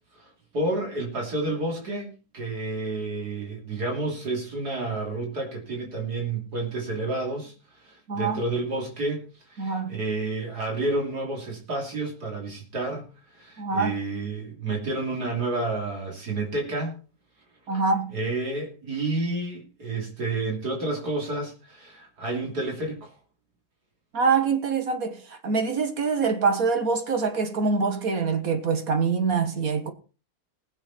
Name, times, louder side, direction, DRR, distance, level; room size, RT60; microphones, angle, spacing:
voice 1, 0.1-13.1 13.3-17.0 18.1-23.1, right 2 dB, 85° right, 3.7 m, -30 dB
voice 2, 8.1-8.4 9.6-10.0 13.6-14.0 17.7-18.1 24.1-29.9, right 5 dB, 65° right, 1.9 m, -25 dB
19.5 x 7.3 x 4.3 m
omnidirectional pair, 1.7 m